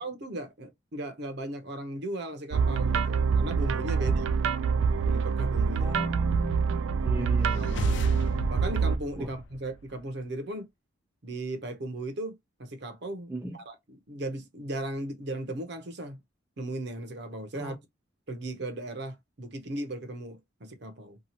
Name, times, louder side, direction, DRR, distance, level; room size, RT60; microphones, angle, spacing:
voice 1, 0.0-4.4 5.1-6.0 7.6-7.9 8.5-10.7 11.2-12.3 12.6-16.2 16.6-17.8 18.3-21.2, right 1 dB, 55° right, 0.7 m, -37 dB
sound 1, 2.5-9.0, right 5 dB, 85° right, 0.4 m, -26 dB
voice 2, 3.9-4.4 5.8-8.3 9.2-9.3 13.3-13.6 17.5-17.8, right 1 dB, 10° right, 0.4 m, -37 dB
sound 2, 7.4-10.2, left 2 dB, 65° left, 0.4 m, -37 dB
2.8 x 2.3 x 2.8 m
head